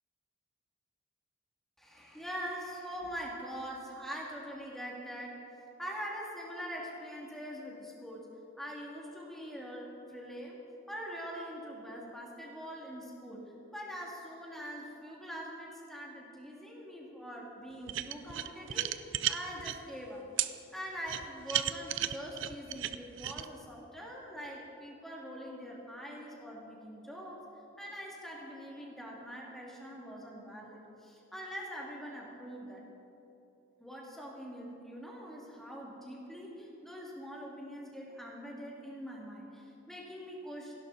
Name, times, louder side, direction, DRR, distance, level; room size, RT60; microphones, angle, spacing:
voice 1, 1.8-5.4 5.8-8.3 8.6-10.6 10.9-13.4 13.7-18.9 19.3-27.4 27.8-32.8 33.8-40.7, equal, ahead, -4 dB, 2.6 m, -43 dB
sound 1, 17.9-19.8 20.4-20.5 21.1-23.4, right 12 dB, 65° right, 0.6 m, -33 dB
29.0 x 11.5 x 4.2 m, 2.8 s
head